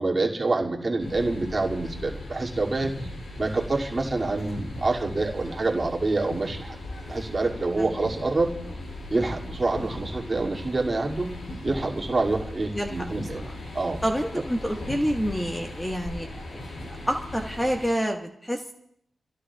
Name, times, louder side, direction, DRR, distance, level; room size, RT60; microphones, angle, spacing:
voice 1, 0.0-2.9 3.4-6.8 7.1-8.5 9.1-11.3 11.6-13.5 13.7-14.0, right 3 dB, 35° right, -2 dB, 2.5 m, -26 dB
sound 1, 1.0-17.9, left 1 dB, 65° left, 6.1 m, -38 dB
voice 2, 14.0-16.4 17.1-18.7, equal, 10° left, 2 dB, 1.5 m, -27 dB
29.5 x 16.5 x 2.4 m, 0.71 s
cardioid pair, 65°, 0 cm